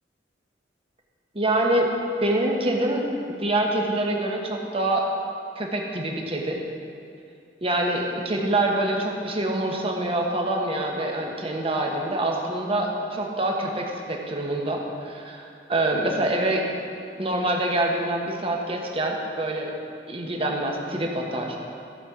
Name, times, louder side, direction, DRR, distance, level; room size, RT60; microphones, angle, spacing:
voice 1, 1.3-1.9 2.2-3.1 3.4-5.0 5.6-6.6 7.6-14.8 15.0-16.6 17.2-19.7 20.1-21.7, right 1 dB, 35° right, 0 dB, 1.2 m, -25 dB
14.5 x 5.3 x 6.0 m, 2.6 s
head